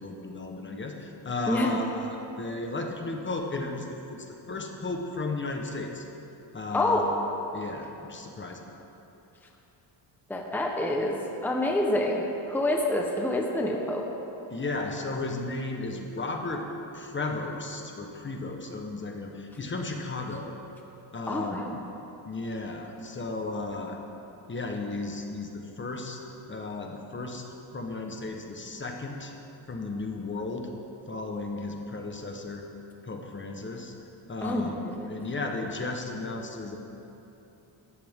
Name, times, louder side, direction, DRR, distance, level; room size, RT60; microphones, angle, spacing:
voice 1, 0.0-6.0 6.5-7.1 7.5-8.6 14.5-16.6 16.9-20.5 21.1-21.6 22.2-24.0 24.5-26.2 26.5-29.3 29.7-30.7 31.1-32.6 33.0-33.9 34.3-34.8 35.1-36.8, left 3 dB, 25° left, 2 dB, 1.2 m, -34 dB
voice 2, 1.5-1.8 6.7-7.0 10.3-14.1 21.3-21.8 34.4-35.1, left 1 dB, 5° left, 0 dB, 1.0 m, -27 dB
16.5 x 13.5 x 3.7 m, 3.0 s
cardioid pair, 135°, 47 cm